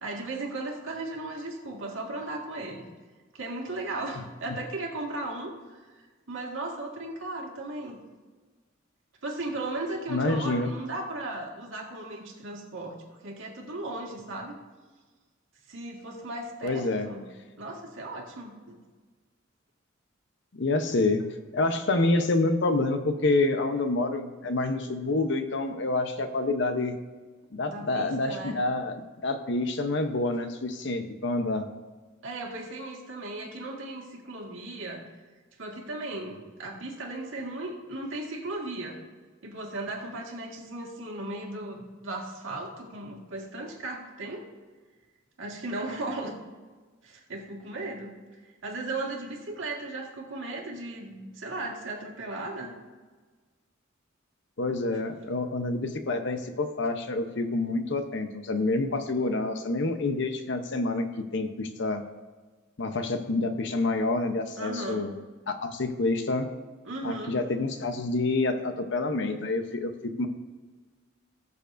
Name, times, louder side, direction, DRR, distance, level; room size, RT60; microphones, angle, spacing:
voice 1, 0.0-2.9 3.3-8.0 9.2-13.0 13.2-14.6 15.7-17.3 17.6-18.8 27.7-28.6 32.2-35.0 35.6-39.0 39.4-44.5 45.4-46.3 47.0-48.1 48.6-52.7 64.6-65.1 66.8-67.4, right 2 dB, 75° right, -1 dB, 1.9 m, -36 dB
voice 2, 10.1-10.7 16.6-17.1 20.5-21.3 21.5-27.0 27.5-31.7 54.6-61.1 61.3-62.0 62.8-65.1 65.5-66.5 67.0-70.3, left 2 dB, 65° left, 7 dB, 0.8 m, -27 dB
19.0 x 6.9 x 2.6 m, 1.4 s
head